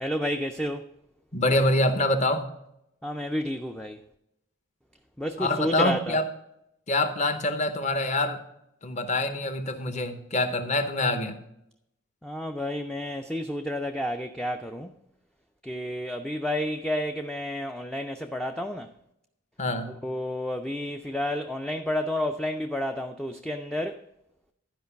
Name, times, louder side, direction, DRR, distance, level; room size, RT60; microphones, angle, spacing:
voice 1, 0.0-0.9 3.0-4.0 5.2-6.2 12.2-14.9 15.6-18.9 20.0-24.0, left 1 dB, 5° left, 0.3 m, -30 dB
voice 2, 1.3-2.5 5.4-6.2 6.9-8.4 8.8-11.4 19.6-19.9, left 2 dB, 35° left, 0.8 m, -25 dB
12.0 x 5.2 x 5.6 m
head